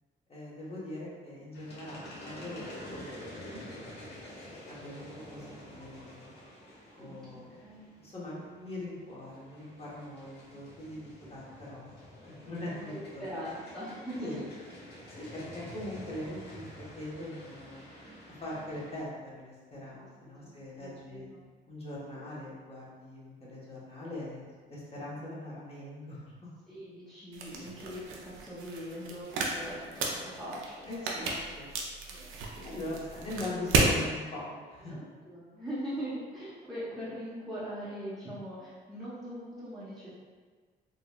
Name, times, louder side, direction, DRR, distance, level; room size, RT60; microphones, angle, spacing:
voice 1, 0.3-3.1 3.7-3.9 4.4-5.4 5.7-6.3 7.0-7.7 8.0-11.9 12.2-12.7 13.1-13.2 14.2-14.4 15.1-17.8 18.4-21.3 21.7-26.3 29.8-29.9 30.9-31.7 32.6-34.9, left 1 dB, 30° left, -7 dB, 1.1 m, -41 dB
sound 1, 1.5-19.0, left 1 dB, 60° left, 1.0 m, -48 dB
voice 2, 6.9-7.9 11.2-11.5 12.2-12.3 12.7-14.4 19.9-20.1 20.4-21.4 22.1-22.3 24.9-25.1 26.7-30.8 31.1-31.3 32.1-32.9 33.4-33.6 34.8-40.1, equal, ahead, -12 dB, 0.8 m, -42 dB
sound 2, 27.3-34.0, right 3 dB, 85° right, 0.5 m, -33 dB
3.8 x 2.3 x 2.2 m, 1.5 s
cardioid pair, 90°, 20 cm